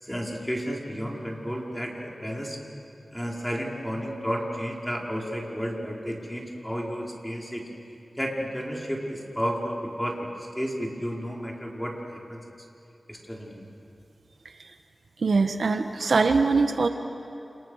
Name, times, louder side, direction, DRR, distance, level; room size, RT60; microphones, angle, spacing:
voice 1, 0.0-2.6 3.1-7.6 8.2-10.3 10.5-12.4 13.1-13.6, equal, 5° left, -2 dB, 5.1 m, -32 dB
voice 2, 15.2-16.9, right 4 dB, 80° right, 6 dB, 1.4 m, -22 dB
30.0 x 29.5 x 6.6 m, 2.7 s
wide cardioid pair, 75°, 0 cm